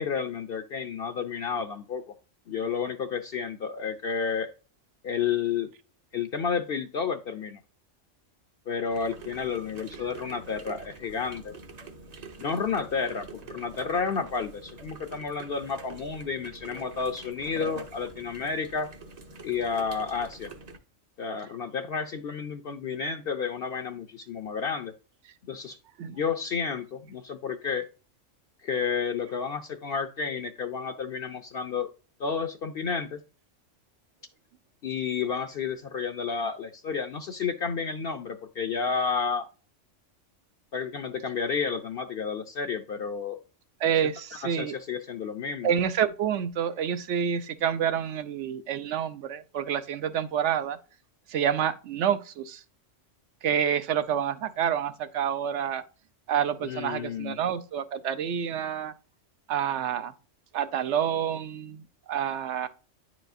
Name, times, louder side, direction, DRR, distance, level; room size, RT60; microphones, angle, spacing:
voice 1, 0.0-2.0 2.5-4.5 5.0-5.7 6.1-7.6 8.7-11.5 12.4-18.9 19.4-20.5 21.2-24.9 25.5-25.8 26.1-27.9 28.6-31.9 32.2-33.2 34.8-39.5 40.7-43.4 44.4-45.7 56.6-57.4, left 6 dB, 60° left, 0.7 m, -31 dB
sound 1, 8.9-20.8, right 3 dB, 40° right, 0.7 m, -45 dB
voice 2, 43.8-44.7 45.6-50.8 51.3-52.6 53.4-55.8 56.3-58.9 59.5-60.1 60.5-62.7, right 8 dB, 70° right, 1.0 m, -28 dB
9.7 x 4.8 x 2.6 m
omnidirectional pair, 1.3 m